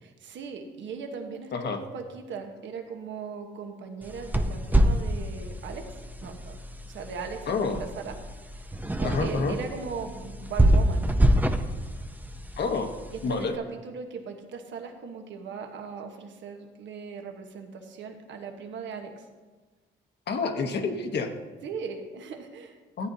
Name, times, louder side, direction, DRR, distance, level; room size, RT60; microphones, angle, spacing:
voice 1, 0.0-5.9 6.2-6.6 6.9-7.6 8.0-8.1 9.0-11.1 13.1-19.2 21.6-22.8, right 5 dB, 70° right, 4 dB, 1.2 m, -38 dB
sound 1, 4.0-13.4, right 1 dB, 10° right, 0.7 m, -26 dB
voice 2, 7.5-7.8 9.0-9.5 12.6-12.9 13.2-13.6 20.3-21.3 23.0-23.1, left 4 dB, 60° left, 6 dB, 1.1 m, -28 dB
13.5 x 8.9 x 2.8 m, 1.3 s
cardioid pair, 90°, 20 cm